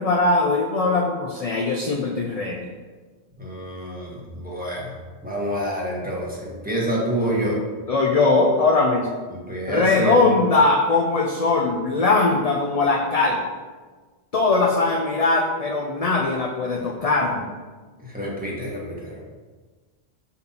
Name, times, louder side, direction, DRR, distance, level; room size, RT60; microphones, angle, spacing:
voice 1, 0.0-2.7 7.9-9.1 9.7-13.4 14.3-17.5, left 3 dB, 45° left, 1 dB, 0.5 m, -20 dB
voice 2, 3.4-7.6 9.3-10.2 18.0-19.2, right 1 dB, 10° right, -5 dB, 1.4 m, -28 dB
5.6 x 3.8 x 5.8 m, 1.4 s
omnidirectional pair, 1.1 m